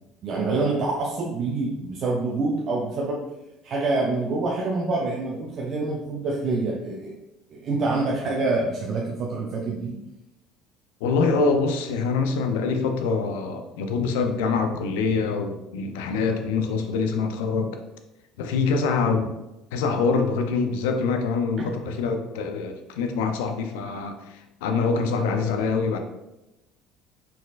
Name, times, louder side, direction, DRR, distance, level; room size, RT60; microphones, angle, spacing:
voice 1, 0.2-3.2 3.6-7.1 7.5-9.9, right 3 dB, 55° right, -2 dB, 0.6 m, -26 dB
voice 2, 11.0-17.8 18.4-19.3 19.7-26.0, left 4 dB, 80° left, 6 dB, 0.5 m, -25 dB
4.2 x 4.0 x 2.4 m, 0.95 s
hypercardioid pair, 70°, 0 cm